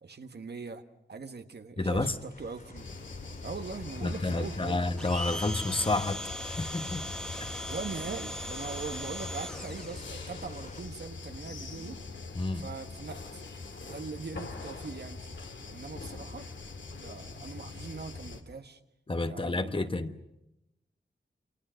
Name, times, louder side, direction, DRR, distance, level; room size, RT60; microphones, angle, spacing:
voice 1, 0.0-0.8 1.1-2.8 3.4-4.8 7.7-12.0 12.6-13.4 13.8-15.4 15.7-16.5 16.9-18.8 19.2-20.0, right 4 dB, 60° right, 1.6 m, -41 dB
voice 2, 1.8-2.2 4.0-7.1 7.4-7.6 12.3-12.7 19.1-20.2, left 2 dB, 25° left, 1.2 m, -30 dB
sound 1, 1.9-10.8, left 2 dB, 45° left, 3.5 m, -47 dB
sound 2, 2.8-18.4, left 3 dB, 75° left, 2.6 m, -43 dB
Domestic sounds home sounds, 5.0-10.1, equal, 5° left, 1.1 m, -39 dB
28.5 x 27.0 x 6.5 m
wide cardioid pair, 115°, 19 cm